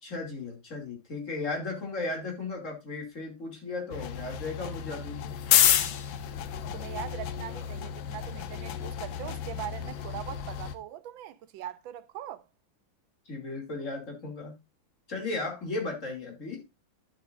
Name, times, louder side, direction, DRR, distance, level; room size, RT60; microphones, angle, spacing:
voice 1, 0.0-5.3 13.3-14.5 15.1-16.6, left 3 dB, 40° left, 2.9 m, -35 dB
sound 1, 3.9-10.7, left 10 dB, 75° left, 1.5 m, -30 dB
voice 2, 6.7-12.4, right 12 dB, 80° right, 1.4 m, -41 dB
11.5 x 7.4 x 2.5 m
omnidirectional pair, 2.2 m